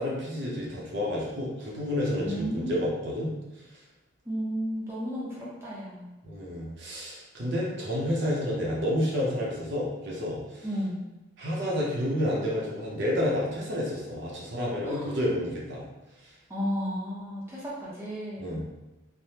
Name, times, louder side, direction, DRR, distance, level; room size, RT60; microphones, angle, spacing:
voice 1, 0.0-3.3 6.2-10.7 11.4-15.9 18.4-18.6, left 1 dB, 55° right, -4 dB, 0.6 m, -30 dB
voice 2, 2.2-2.8 4.3-6.1 10.6-11.0 14.8-15.2 16.5-18.6, equal, 10° right, -7 dB, 0.6 m, -33 dB
3.3 x 2.0 x 2.8 m, 1.0 s
head